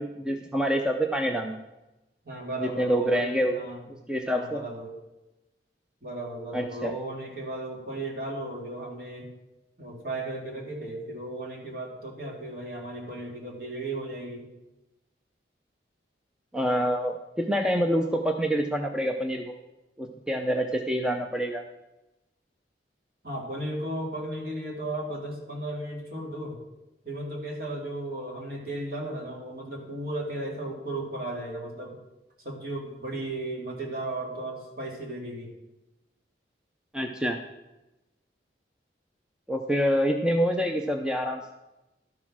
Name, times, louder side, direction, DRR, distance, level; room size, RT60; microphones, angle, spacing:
voice 1, 0.0-1.6 2.6-3.5 4.1-4.6 6.5-6.9 16.5-19.5 20.0-21.6 36.9-37.4 39.5-41.5, equal, 5° right, 3 dB, 0.5 m, -26 dB
voice 2, 2.2-3.8 4.2-4.9 6.0-9.3 9.8-14.5 23.2-26.6 27.0-32.0 32.4-35.5, right 1 dB, 55° right, -1 dB, 2.5 m, -35 dB
12.0 x 6.2 x 6.0 m, 0.98 s
head